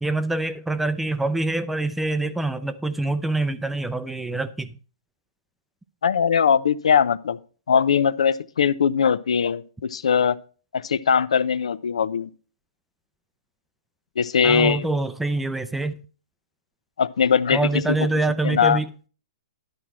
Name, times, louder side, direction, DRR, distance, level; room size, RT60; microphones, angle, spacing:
voice 1, 0.0-4.7 14.4-15.9 17.5-18.9, right 2 dB, 5° right, 0.5 m, -25 dB
voice 2, 6.0-7.4 7.7-10.4 10.7-12.3 14.2-14.9 17.0-17.8 18.4-18.8, left 7 dB, 85° left, 0.6 m, -20 dB
11.0 x 4.4 x 6.2 m
hypercardioid pair, 145°, 3 cm